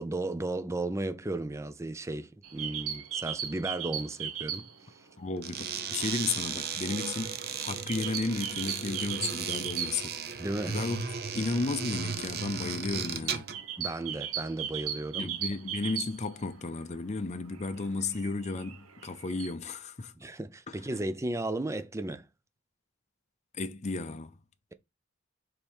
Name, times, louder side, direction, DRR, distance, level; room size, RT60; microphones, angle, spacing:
voice 1, 0.0-5.1 10.4-10.8 13.8-15.3 20.2-22.2, right 2 dB, 15° right, 0.4 m, -35 dB
sound 1, 2.4-4.9 5.2-5.3 5.6-10.4 10.8-10.9 11.1-11.3 11.8-16.8 17.3-19.5, right 9 dB, 90° right, 1.1 m, -38 dB
voice 2, 5.2-10.2 10.7-11.1 11.3-13.5 15.2-20.1 20.7-20.8 23.6-24.4, left 3 dB, 30° left, 0.6 m, -33 dB
sound 2, 5.4-13.6, right 7 dB, 50° right, 0.7 m, -36 dB
5.3 x 4.2 x 4.5 m
head